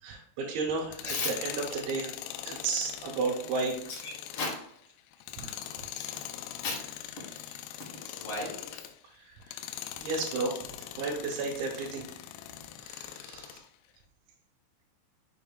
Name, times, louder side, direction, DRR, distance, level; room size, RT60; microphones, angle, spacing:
voice 1, 0.0-2.1 2.4-3.8 5.4-5.5 7.8-8.2 9.2-9.6 10.0-12.1 12.8-13.6, right 4 dB, 70° right, -6 dB, 3.4 m, -33 dB
Tools, 0.8-9.0 9.4-13.6, left 11 dB, 85° left, 3.1 m, -42 dB
voice 2, 5.8-6.3 6.6-6.8 7.3-7.5 8.0-8.8, left 3 dB, 40° left, -5 dB, 2.3 m, -35 dB
6.6 x 6.5 x 2.3 m, 0.69 s
omnidirectional pair, 5.8 m